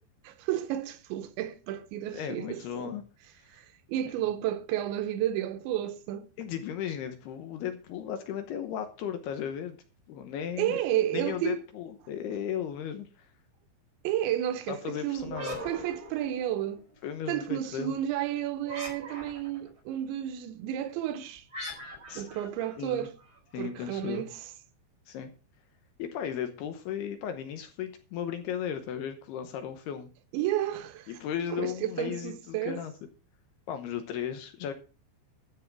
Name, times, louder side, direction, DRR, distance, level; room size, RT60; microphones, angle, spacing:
voice 1, 0.2-3.0 3.5-6.3 10.6-11.6 14.0-16.9 17.3-21.4 22.2-23.2 23.6-24.4 30.3-31.2 31.5-32.8, right 12 dB, 80° right, 3.0 m, -32 dB
voice 2, 2.1-3.0 6.4-9.8 10.1-10.8 11.1-13.3 14.7-15.6 17.0-17.9 22.1-22.3 22.8-23.1 23.5-24.2 25.1-25.3 26.0-30.1 31.1-32.9 33.7-34.7, left 9 dB, 75° left, 2.7 m, -35 dB
sound 1, 15.2-16.8 18.6-19.7 21.5-23.4, equal, 20° right, 4.8 m, -41 dB
13.5 x 5.7 x 5.9 m
omnidirectional pair, 5.4 m